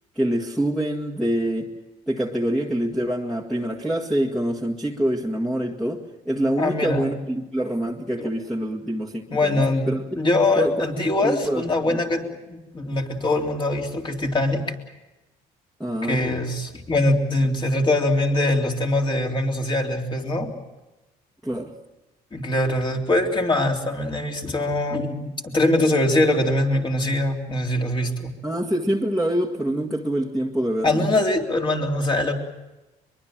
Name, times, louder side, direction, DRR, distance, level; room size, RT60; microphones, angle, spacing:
voice 1, 0.2-1.7 2.1-10.1 10.6-12.0 15.8-16.2 21.4-21.7 28.4-31.0, right 1 dB, ahead, -2 dB, 1.9 m, -25 dB
voice 2, 6.6-7.1 8.2-8.3 9.3-9.9 10.1-14.6 16.0-20.5 22.3-28.3 30.8-32.3, left 2 dB, 30° left, 1 dB, 3.5 m, -23 dB
23.0 x 23.0 x 7.5 m, 1.0 s
cardioid pair, 110°, 17 cm